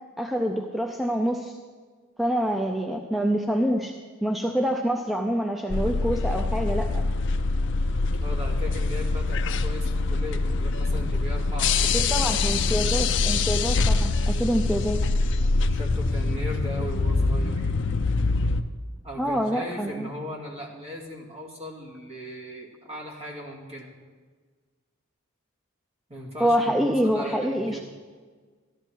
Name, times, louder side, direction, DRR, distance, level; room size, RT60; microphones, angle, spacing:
voice 1, 0.2-1.6 2.2-3.9 4.2-7.0 11.9-15.0 19.2-20.1 26.4-27.8, equal, ahead, 2 dB, 0.5 m, -26 dB
sound 1, 5.7-18.6, left 3 dB, 60° left, 0.6 m, -24 dB
voice 2, 7.8-12.9 15.7-17.7 19.0-23.9 26.1-27.8, equal, 30° right, -2 dB, 2.2 m, -38 dB
13.5 x 12.0 x 4.6 m, 1.5 s
head